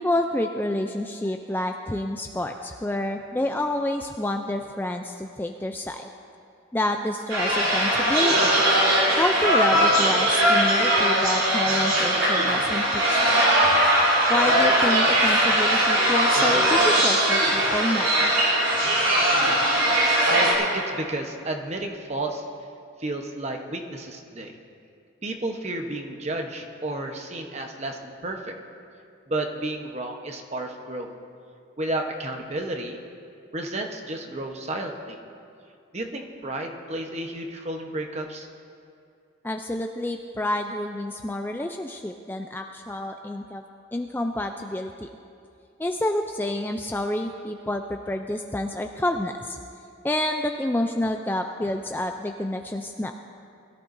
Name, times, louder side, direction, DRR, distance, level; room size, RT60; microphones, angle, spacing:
voice 1, 0.0-6.1 6.7-8.5 9.2-13.4 14.3-18.3 39.4-43.6 43.9-45.1 45.8-49.6 50.0-53.1, left 1 dB, 10° left, 4 dB, 0.3 m, -28 dB
sound 1, 7.3-20.5, right 1 dB, 70° right, 3.4 m, -20 dB
voice 2, 20.3-22.4 23.0-24.6 25.2-28.5 29.3-31.1 31.8-33.0 33.5-35.2 35.9-38.5, right 2 dB, 30° right, 3 dB, 0.9 m, -32 dB
21.5 x 13.5 x 2.6 m, 2.5 s
head